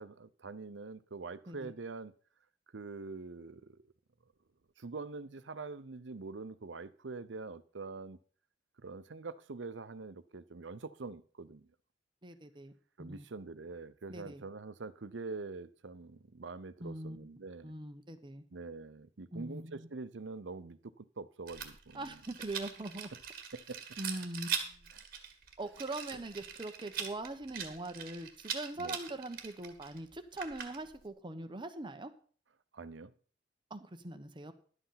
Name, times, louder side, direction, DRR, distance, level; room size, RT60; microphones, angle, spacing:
voice 1, 0.0-2.1 2.7-3.8 4.8-8.2 8.8-11.7 13.0-17.7 18.5-22.1 23.5-23.8 24.1-24.3 24.9-25.0 28.8-29.0 32.7-33.1, right 3 dB, 80° right, 0.7 m, -45 dB
voice 2, 12.2-12.7 13.0-13.2 14.1-14.4 16.8-18.4 19.3-19.9 21.9-23.1 24.0-24.9 25.6-32.1 33.7-34.5, right 2 dB, 25° right, 1.0 m, -42 dB
Rattle, 21.5-31.1, right 7 dB, 55° right, 1.8 m, -42 dB
11.5 x 8.1 x 5.7 m
head